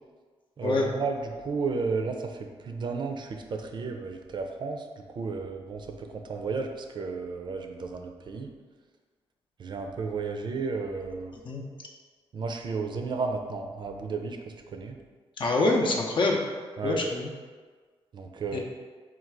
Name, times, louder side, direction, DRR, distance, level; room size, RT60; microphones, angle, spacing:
voice 1, 0.6-4.8 5.1-8.5 9.6-11.3 12.3-14.4 14.7-15.0 16.8-17.0 18.1-18.6, right 4 dB, 50° right, 4 dB, 0.5 m, -33 dB
voice 2, 15.4-16.4 16.8-17.3 18.5-18.6, left 2 dB, 50° left, 0 dB, 0.6 m, -25 dB
3.8 x 2.4 x 4.6 m, 1.5 s
cardioid pair, 105°, 10 cm